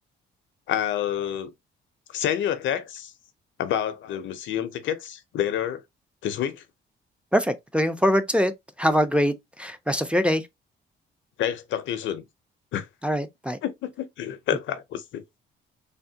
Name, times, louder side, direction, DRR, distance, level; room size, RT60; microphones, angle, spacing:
voice 1, 0.7-1.5 2.1-3.1 3.6-5.8 6.2-6.6 11.4-12.2 12.7-12.9 13.6-15.2, left 10 dB, 75° left, 0.5 m, -28 dB
voice 2, 7.3-8.5 8.8-10.5 13.0-13.6, equal, 5° right, 0.4 m, -23 dB
3.4 x 2.1 x 2.6 m
cardioid pair, 90°, 20 cm